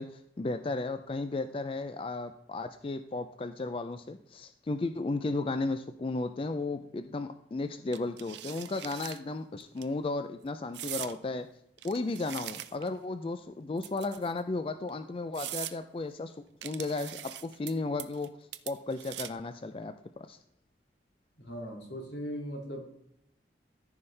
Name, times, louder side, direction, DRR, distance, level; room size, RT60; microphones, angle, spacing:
voice 1, 0.0-11.5 11.8-16.4 16.6-18.3 18.7-20.4, left 3 dB, 30° left, 9 dB, 0.4 m, -34 dB
sound 1, 7.9-9.2 9.6-9.8 10.7-11.1 11.8-13.0 13.8-14.4 14.9-15.0 15.3-15.8 16.6-17.7 18.0-18.3 18.5-19.5, right 13 dB, 85° right, 0.5 m, -41 dB
voice 2, 21.4-22.8, equal, 85° left, 0 dB, 2.4 m, -39 dB
14.0 x 5.5 x 3.3 m, 0.74 s
head